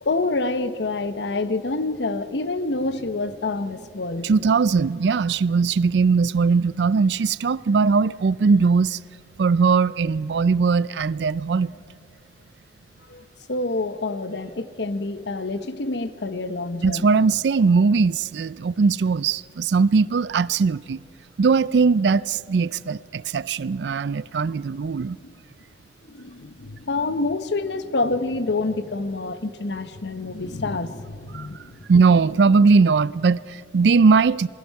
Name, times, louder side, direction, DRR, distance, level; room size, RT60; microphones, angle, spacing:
voice 1, 0.0-4.3 13.1-13.2 13.5-17.1 25.2-25.3 26.1-31.9, left 3 dB, 75° left, 0.9 m, -27 dB
voice 2, 4.2-9.0 9.4-11.7 16.8-21.0 21.4-25.2 31.3-31.5 31.9-34.5, right 4 dB, 75° right, 0.4 m, -20 dB
27.5 x 21.5 x 4.7 m
head